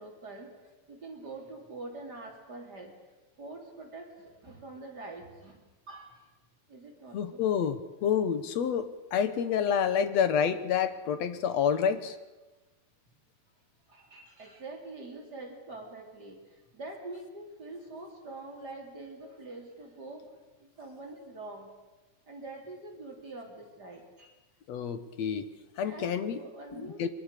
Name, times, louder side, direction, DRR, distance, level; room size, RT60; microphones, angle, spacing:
voice 1, 0.0-2.9 3.4-6.3 6.7-7.4 13.9-20.3 20.6-21.7 22.3-24.3 25.8-27.0, right 2 dB, 30° right, 1 dB, 3.7 m, -45 dB
voice 2, 7.1-12.2 24.7-25.5 25.8-26.4 26.7-27.1, left 7 dB, 65° left, 11 dB, 2.2 m, -28 dB
24.0 x 23.0 x 6.7 m, 1.1 s
omnidirectional pair, 3.5 m